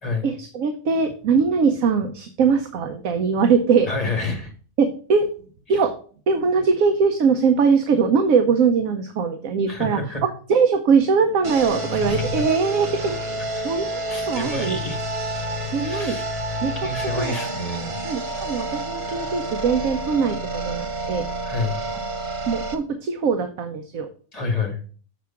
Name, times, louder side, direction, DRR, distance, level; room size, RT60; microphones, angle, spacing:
voice 1, 0.2-3.9 4.8-5.3 5.7-6.0 6.3-13.9 14.3-14.8 15.7-16.1 16.6-16.7 17.2-17.4 18.0-21.3 22.5-24.1, right 5 dB, 75° right, 6 dB, 1.1 m, -21 dB
voice 2, 3.9-4.5 9.7-10.2 11.9-12.3 13.6-13.7 14.1-15.1 15.8-16.2 16.7-18.0 21.4-21.8 24.3-24.8, left 3 dB, 25° left, 2 dB, 1.8 m, -28 dB
sound 1, 11.4-22.7, right 1 dB, 50° right, 1.1 m, -29 dB
7.3 x 4.7 x 5.7 m, 0.42 s
omnidirectional pair, 1.5 m